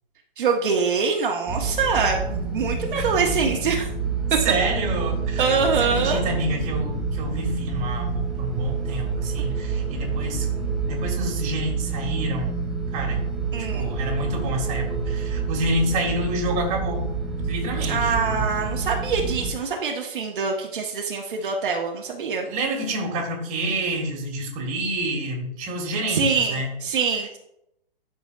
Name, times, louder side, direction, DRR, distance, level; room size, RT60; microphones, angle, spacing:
voice 1, 0.4-3.8 5.4-6.2 13.5-13.9 17.9-22.5 26.1-27.4, right 5 dB, 60° right, 1 dB, 1.3 m, -24 dB
sound 1, 1.5-19.5, right 4 dB, ahead, 2.0 m, -28 dB
voice 2, 4.4-5.5 5.9-10.5 10.8-12.6 12.9-13.2 13.7-17.0 17.5-18.4 22.5-26.7, right 1 dB, 25° right, 1 dB, 2.0 m, -28 dB
11.0 x 6.2 x 2.4 m, 0.80 s
hypercardioid pair, 130°, 30 cm